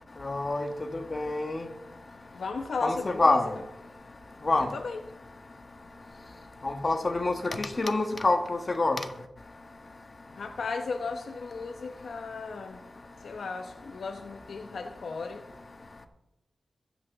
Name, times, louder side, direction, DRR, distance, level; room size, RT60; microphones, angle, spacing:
voice 1, 0.2-0.7 0.9-1.6 2.8-3.5 4.4-4.7 6.6-9.0, left 2 dB, 40° left, 1.6 m, -26 dB
voice 2, 1.2-3.4 4.6-5.0 10.3-16.1, left 4 dB, 80° left, 1.0 m, -37 dB
22.5 x 8.4 x 4.0 m
wide cardioid pair, 75°, 0 cm